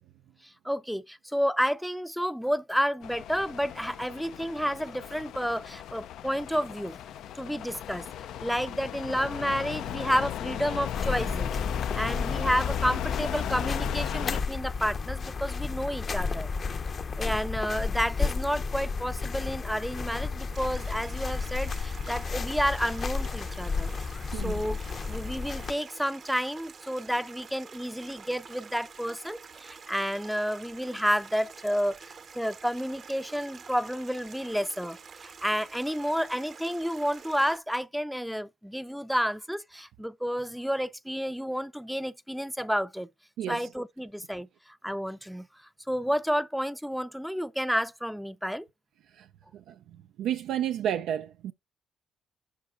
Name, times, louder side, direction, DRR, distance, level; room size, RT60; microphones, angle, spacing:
voice 1, 0.4-7.0 7.3-8.1 8.4-11.5 11.9-16.5 17.2-23.9 24.3-24.8 25.1-43.1 43.5-45.5 45.9-48.7, equal, ahead, 0.5 m, -30 dB
sound 1, 3.0-14.4, left 10 dB, 80° left, 0.4 m, -35 dB
sound 2, 10.9-25.7, left 4 dB, 45° left, 0.6 m, -32 dB
Stream, 20.5-37.6, right 5 dB, 50° right, 0.9 m, -48 dB
voice 2, 50.2-51.5, right 10 dB, 85° right, 0.4 m, -30 dB
11.0 x 4.7 x 2.5 m
cardioid pair, 90°, 0 cm